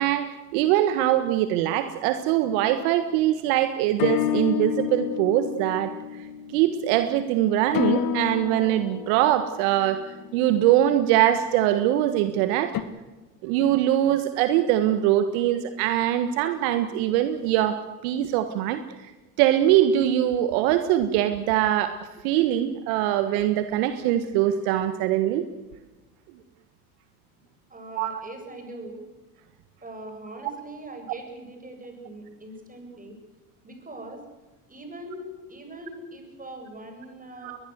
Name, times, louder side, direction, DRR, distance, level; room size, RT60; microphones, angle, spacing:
voice 1, 0.0-5.9 6.5-10.0 10.3-12.8 13.4-19.1 19.4-21.9 22.2-25.5 28.0-28.2 37.4-37.6, right 12 dB, 65° right, 10 dB, 1.6 m, -22 dB
sound 1, 2.3-2.8 4.0-11.1 12.7-12.8, left 10 dB, 50° left, 2.0 m, -30 dB
voice 2, 27.7-29.0 29.8-33.2 33.6-34.2 34.7-37.6, right 1 dB, 20° right, 4 dB, 7.7 m, -41 dB
21.5 x 21.0 x 8.0 m, 1.1 s
hypercardioid pair, 75°, 44 cm